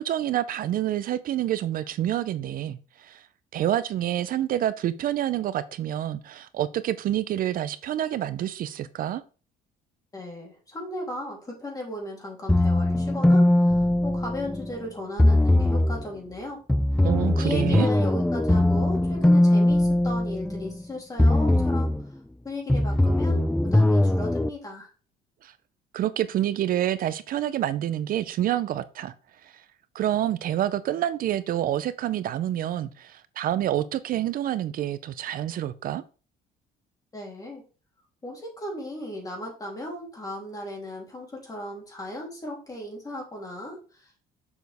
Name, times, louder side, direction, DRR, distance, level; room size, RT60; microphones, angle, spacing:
voice 1, 0.0-3.3 3.5-9.2 17.0-17.9 25.4-25.5 25.9-29.1 29.4-29.6 29.9-36.0, right 12 dB, 60° right, 0.5 m, -27 dB
voice 2, 10.1-16.6 17.4-21.9 22.4-24.9 37.1-37.6 38.2-44.3, left 1 dB, 20° left, 3.1 m, -36 dB
sound 1, 12.5-14.7 15.2-16.0 16.7-20.8 21.2-22.0 22.7-24.5, left 1 dB, 5° left, 0.3 m, -21 dB
7.0 x 6.2 x 3.5 m
cardioid pair, 110°, 17 cm